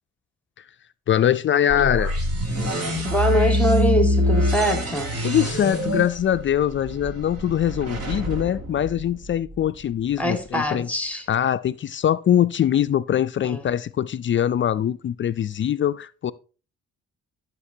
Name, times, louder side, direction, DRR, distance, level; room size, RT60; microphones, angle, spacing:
voice 1, 1.1-2.1 5.2-10.9 11.3-16.3, left 10 dB, 40° left, 0.4 m, -22 dB
sound 1, 1.7-9.6, equal, 55° right, 2.6 m, -25 dB
voice 2, 3.0-5.1 10.2-11.2 13.5-13.6, equal, 5° left, 1.8 m, -23 dB
14.0 x 6.6 x 2.7 m
cardioid pair, 90°, 30 cm